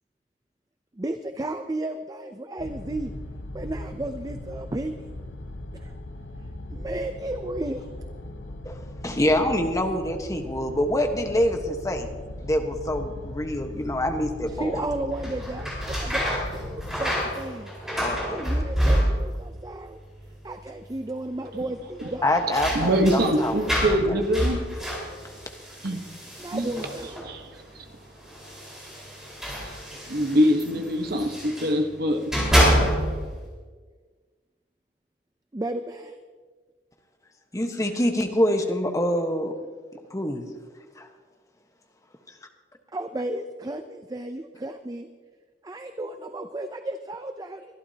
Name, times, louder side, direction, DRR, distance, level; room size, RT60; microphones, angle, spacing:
voice 1, 1.0-3.1 3.5-5.1 5.7-5.9 6.7-7.9 14.5-17.7 18.3-20.0 20.4-22.3 26.4-27.5 35.5-36.2 42.9-45.1 45.6-47.6, right 1 dB, 20° right, 8 dB, 0.5 m, -33 dB
sound 1, 2.6-17.1, left 1 dB, 80° left, 0.8 m, -38 dB
voice 2, 8.6-12.1 12.4-14.8 18.0-18.4 22.2-24.2 37.5-39.5 40.1-40.5 41.0-41.1, left 1 dB, 20° left, 4 dB, 1.2 m, -26 dB
sound 2, 15.1-19.5 19.8-20.5 20.8-20.9 22.0-27.4 28.3-31.8 32.1-33.3, equal, 5° right, 4.6 m, -27 dB
voice 3, 22.6-24.6 25.8-26.0 26.5-26.7 27.2-27.8 30.1-32.2, equal, 60° right, 4 dB, 1.2 m, -24 dB
23.5 x 12.0 x 2.8 m, 1.4 s
head